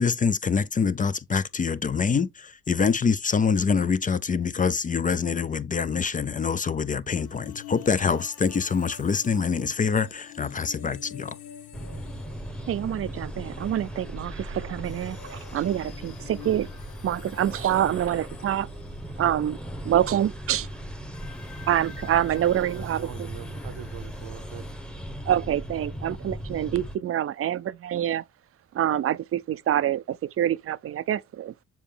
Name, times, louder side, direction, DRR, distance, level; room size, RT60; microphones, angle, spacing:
voice 1, 0.0-11.3, left 5 dB, 25° left, 0.5 m, -25 dB
sound 1, 7.2-13.9 14.8-20.6 21.1-24.7, left 9 dB, 75° left, 1.1 m, -48 dB
sound 2, 11.7-27.0, equal, 5° left, 1.1 m, -38 dB
voice 2, 12.7-16.7 17.0-18.7 19.2-19.6 19.8-20.7 21.7-23.3 25.3-28.2 28.7-31.5, right 11 dB, 50° right, 0.5 m, -26 dB
voice 3, 22.5-24.8, right 11 dB, 80° right, 0.8 m, -41 dB
7.1 x 4.4 x 3.4 m
cardioid pair, 90°, 30 cm